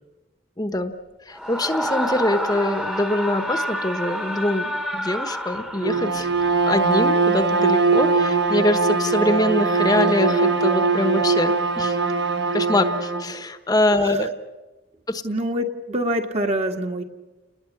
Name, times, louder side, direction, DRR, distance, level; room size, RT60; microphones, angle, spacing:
voice 1, 0.6-0.9 1.3-6.3 6.7-12.0 12.5-14.3 15.1-15.2, left 1 dB, 20° left, 8 dB, 1.1 m, -23 dB
Screaming, 1.3-6.2, equal, 5° right, 1.3 m, -28 dB
Bowed string instrument, 5.7-13.3, right 4 dB, 60° right, 1.7 m, -21 dB
voice 2, 15.2-17.0, right 1 dB, 35° right, 4 dB, 1.9 m, -25 dB
30.0 x 20.5 x 8.5 m, 1.2 s
head